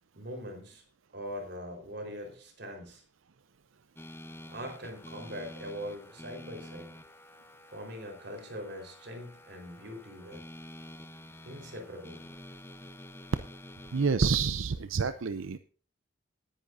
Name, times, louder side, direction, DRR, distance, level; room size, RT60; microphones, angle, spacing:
voice 1, 0.1-0.8 1.1-3.0 4.5-6.9 7.7-10.5 11.5-12.2, equal, 55° right, 3 dB, 4.3 m, -42 dB
sound 1, 4.0-14.2, left 1 dB, 10° left, 0.8 m, -49 dB
voice 2, 13.9-15.6, right 5 dB, 90° right, 11 dB, 0.6 m, -28 dB
18.5 x 10.0 x 2.6 m, 0.42 s
head